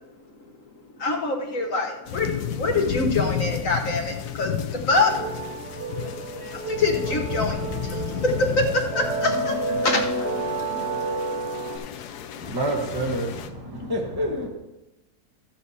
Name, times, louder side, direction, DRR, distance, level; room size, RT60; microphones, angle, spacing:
voice 1, 1.0-5.1 5.8-5.9 6.7-7.6 7.9-8.0 8.2-10.3 12.4-12.6 13.8-13.9, left 2 dB, 55° left, 1.4 m, -25 dB
sound 1, 2.1-13.5, left 10 dB, 75° left, 1.2 m, -32 dB
sound 2, 4.9-11.8, right 3 dB, 40° right, 1.8 m, -30 dB
voice 2, 6.0-11.4, right 1 dB, 70° right, 3.2 m, -42 dB
voice 3, 12.4-14.5, right 1 dB, 15° right, 1.2 m, -28 dB
14.0 x 7.3 x 4.2 m
omnidirectional pair, 1.7 m